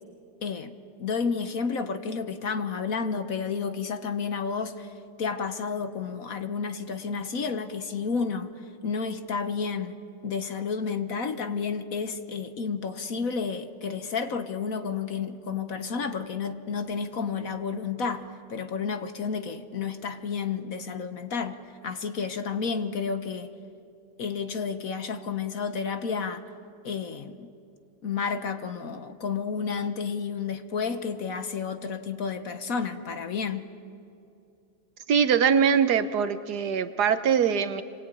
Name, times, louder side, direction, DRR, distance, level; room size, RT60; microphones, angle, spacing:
voice 1, 0.4-0.7 1.0-4.9 5.2-8.5 8.8-9.9 10.2-21.6 21.8-23.5 24.2-26.4 26.8-27.5 28.0-33.7, left 5 dB, 55° left, 1.4 m, -31 dB
voice 2, 35.1-37.8, right 7 dB, 65° right, 1.4 m, -22 dB
27.5 x 22.5 x 9.1 m
omnidirectional pair, 1.9 m